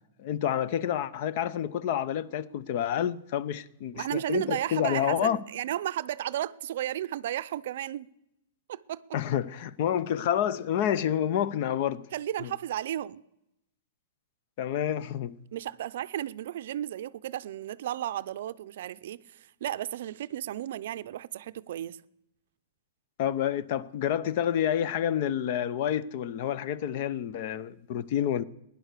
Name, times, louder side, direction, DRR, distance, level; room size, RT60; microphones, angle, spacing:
voice 1, 0.2-5.4 9.1-12.1 12.4-12.5 14.6-15.4 23.2-28.4, left 10 dB, 45° left, 0.6 m, -29 dB
voice 2, 3.9-8.1 8.7-9.0 12.1-13.2 15.5-22.0, right 12 dB, 60° right, 0.5 m, -34 dB
16.0 x 10.5 x 6.7 m
hypercardioid pair, 155°, 0 cm